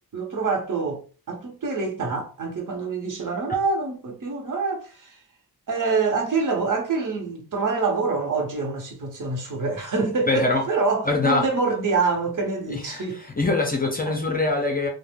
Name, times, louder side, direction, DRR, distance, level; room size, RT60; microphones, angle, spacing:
voice 1, 0.1-1.0 1.3-5.1 5.7-13.2 14.1-14.2, right 4 dB, 55° right, 0.9 m, -26 dB
voice 2, 10.3-10.6 11.1-11.5 12.7-14.9, left 2 dB, 25° left, 0.4 m, -23 dB
2.4 x 2.1 x 3.2 m
wide cardioid pair, 130°, 37 cm